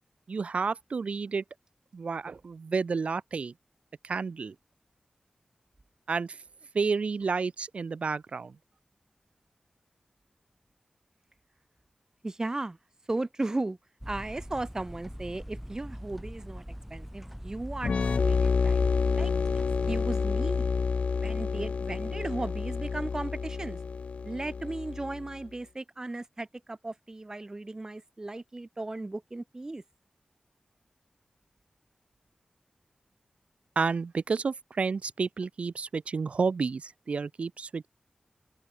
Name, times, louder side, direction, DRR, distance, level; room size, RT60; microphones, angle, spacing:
voice 1, 0.3-1.4 1.9-3.5 4.0-4.5 6.1-6.4 6.7-8.6 33.7-37.9, right 4 dB, 70° right, 1.3 m, -30 dB
voice 2, 12.2-12.8 13.1-13.8 14.1-16.6 16.9-18.8 19.1-19.3 19.9-20.7 21.1-23.8 24.2-29.8, right 2 dB, 30° right, 6.9 m, -36 dB
sound 1, 14.0-20.1, equal, ahead, 2.9 m, -42 dB
sound 2, 17.8-25.4, left 5 dB, 75° left, 0.7 m, -29 dB
wide cardioid pair, 100°, 2 cm